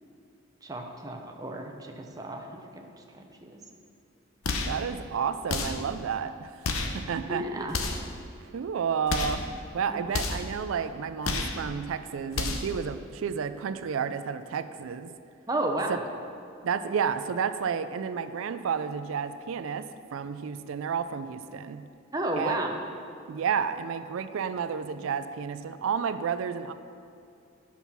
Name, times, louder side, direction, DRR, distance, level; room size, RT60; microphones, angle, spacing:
voice 1, 0.6-2.5 3.1-3.6 7.3-7.8 9.9-10.0 15.5-16.0 22.1-22.8, right 1 dB, 15° right, 2 dB, 0.7 m, -32 dB
sound 1, 4.4-4.8 5.5-5.9 6.6-7.0 7.7-8.1 9.1-9.5 10.1-10.5 11.2-11.6 12.3-12.8, left 3 dB, 80° left, 0.8 m, -30 dB
voice 2, 4.7-6.5 6.9-7.6 8.5-9.4 9.7-15.1 16.6-21.9 22.4-22.6 23.3-26.7, right 6 dB, 75° right, 11 dB, 0.4 m, -31 dB
9.3 x 5.7 x 5.8 m, 2.5 s
head